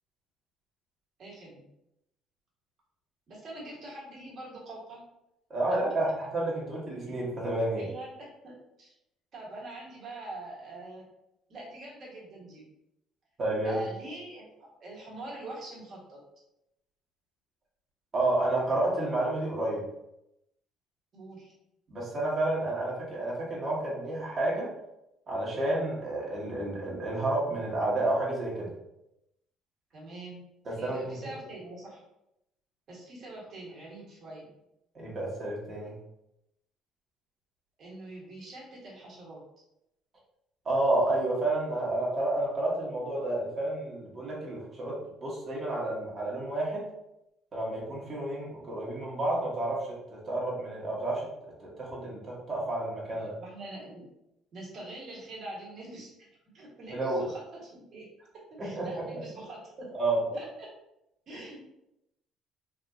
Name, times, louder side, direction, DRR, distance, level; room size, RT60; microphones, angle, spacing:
voice 1, 1.2-1.6 3.3-5.0 5.7-5.8 7.0-7.1 7.4-7.5 7.7-8.9 9.3-11.1 11.5-12.7 13.6-14.5 14.8-16.2 21.1-21.5 29.9-30.4 30.8-32.0 32.9-34.5 37.8-39.4 53.1-54.1 54.5-56.1 56.5-58.1 58.5-59.9 60.3-60.7 61.3-61.6, right 2 dB, 50° right, -4 dB, 1.5 m, -44 dB
voice 2, 5.5-7.9 13.4-13.8 18.1-19.8 21.9-24.7 25.3-28.7 30.6-31.3 34.9-36.0 40.6-46.8 47.5-51.3 51.6-53.3 56.9-57.2 58.7-59.2 59.9-60.4 61.3-61.4, right 2 dB, 35° right, -4 dB, 1.3 m, -30 dB
3.4 x 2.7 x 2.4 m, 0.86 s
cardioid pair, 95°, 0 cm